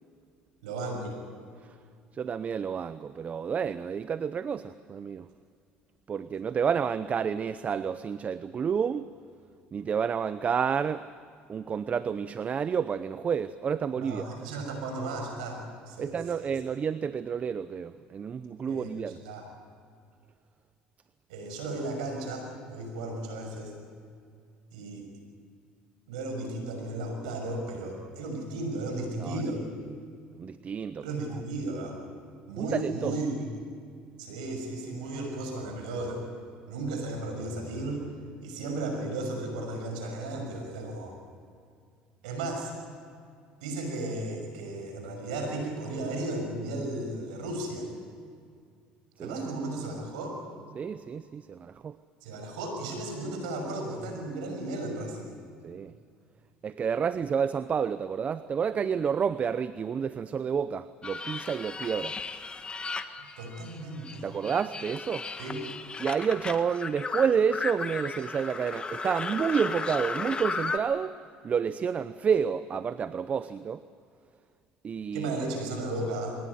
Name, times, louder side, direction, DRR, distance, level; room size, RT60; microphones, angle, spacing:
voice 1, 0.6-1.2 14.0-16.6 18.7-19.0 19.2-19.5 21.3-23.7 24.7-25.0 26.1-29.6 31.0-32.0 32.5-33.5 34.2-36.2 36.7-38.0 38.4-41.2 42.2-42.7 43.6-47.9 49.2-50.4 52.2-55.4 63.4-64.3 65.4-65.6 75.1-76.4, right 2 dB, 90° right, 3 dB, 6.1 m, -35 dB
voice 2, 2.1-5.3 6.1-9.1 9.7-11.1 11.5-14.3 16.0-19.2 29.2-29.4 30.4-31.0 32.6-33.1 49.2-49.5 50.7-52.0 55.6-55.9 56.6-62.2 64.2-65.3 66.0-71.1 71.4-73.8 74.8-75.3, right 7 dB, 40° right, 14 dB, 0.7 m, -29 dB
sound 1, 61.0-63.8 64.0-70.8, left 4 dB, 25° left, 1.6 m, -35 dB
23.0 x 18.5 x 9.7 m, 2.3 s
supercardioid pair, 80°, 4 cm